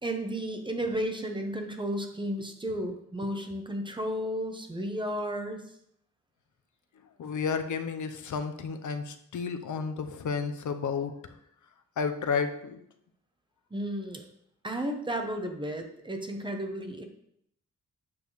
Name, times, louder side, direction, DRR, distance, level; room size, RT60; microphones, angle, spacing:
voice 1, 0.0-5.7 13.7-14.2 14.6-17.0, equal, 15° right, 4 dB, 0.8 m, -33 dB
voice 2, 7.2-11.1 12.0-12.8, left 5 dB, 70° left, 8 dB, 0.8 m, -31 dB
8.6 x 3.5 x 6.3 m, 0.73 s
wide cardioid pair, 175°, 31 cm